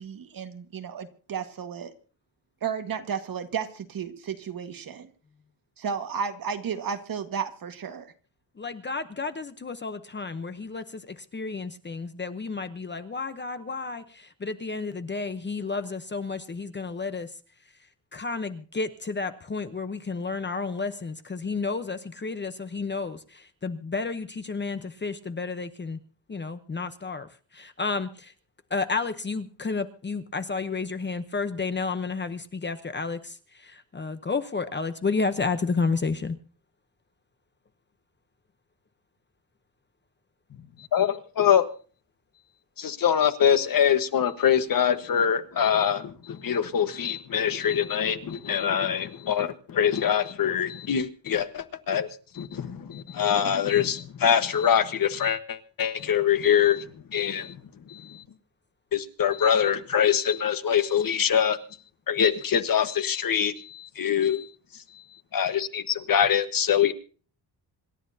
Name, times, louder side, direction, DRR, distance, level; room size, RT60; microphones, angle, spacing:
voice 1, 0.0-1.9 2.6-5.1 5.8-8.1, right 7 dB, 50° right, 7 dB, 1.8 m, -33 dB
voice 2, 8.6-17.3 18.1-26.0 26.3-27.3 27.5-28.3 28.7-36.4, left 4 dB, 25° left, 9 dB, 0.9 m, -31 dB
voice 3, 40.9-41.7 42.8-52.1 52.3-56.8 57.1-57.6 57.9-58.2 58.9-61.6 62.1-64.5 65.3-66.9, left 8 dB, 50° left, 9 dB, 1.4 m, -24 dB
27.0 x 13.0 x 2.8 m, 0.39 s
wide cardioid pair, 160°, 44 cm